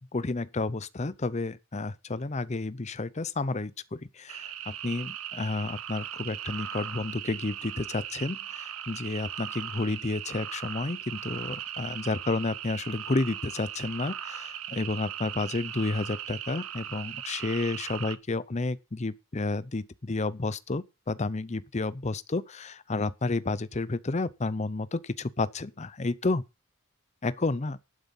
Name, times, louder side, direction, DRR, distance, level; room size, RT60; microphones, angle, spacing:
voice 1, 0.1-26.4 27.2-27.8, left 3 dB, 30° left, 0.6 m, -31 dB
sound 1, 4.3-18.2, right 10 dB, 85° right, 1.0 m, -38 dB
11.5 x 9.3 x 5.5 m
head